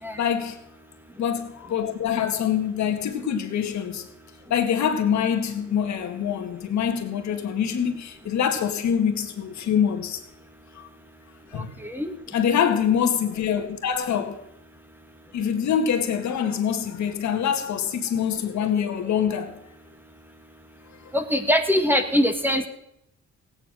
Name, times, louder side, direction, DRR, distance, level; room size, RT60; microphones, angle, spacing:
voice 1, 0.2-0.6 1.2-4.1 4.5-10.2 10.7-10.9 11.5-11.7 12.3-14.4 15.3-19.6 21.0-21.1, left 8 dB, 70° left, 1.9 m, -25 dB
voice 2, 11.5-12.1 21.1-22.7, equal, 5° right, 1.7 m, -23 dB
16.5 x 9.3 x 6.3 m
cardioid pair, 90°, 30 cm